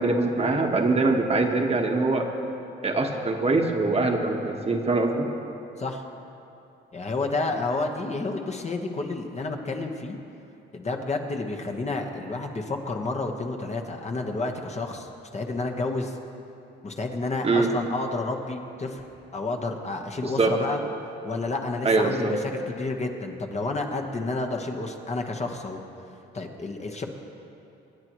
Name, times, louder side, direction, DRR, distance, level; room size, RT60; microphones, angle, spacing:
voice 1, 0.0-2.3 2.8-5.3 17.4-17.7 20.2-20.6 21.8-22.3, right 3 dB, 30° right, 2 dB, 1.3 m, -23 dB
voice 2, 6.9-10.2 10.7-16.2 16.8-19.0 19.3-20.8 21.2-25.8 26.3-27.0, left 3 dB, 35° left, 2 dB, 1.2 m, -30 dB
25.5 x 9.7 x 3.1 m, 2.8 s
cardioid pair, 90°, 20 cm